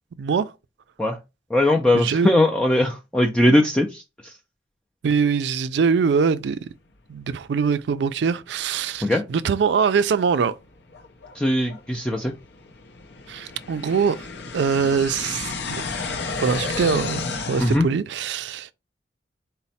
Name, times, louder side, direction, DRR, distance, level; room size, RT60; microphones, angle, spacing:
voice 1, 0.2-0.5 1.9-2.3 5.0-6.7 7.1-10.6 13.3-14.3 14.5-15.8 16.3-18.7, right 6 dB, 70° right, 0.3 m, -23 dB
voice 2, 1.5-4.3 9.0-9.2 11.4-12.3 17.6-17.9, left 1 dB, 5° left, 0.3 m, -20 dB
sound 1, 8.9-9.1 9.6-9.7 10.4-17.8, left 4 dB, 65° left, 0.6 m, -32 dB
4.1 x 2.1 x 4.0 m
head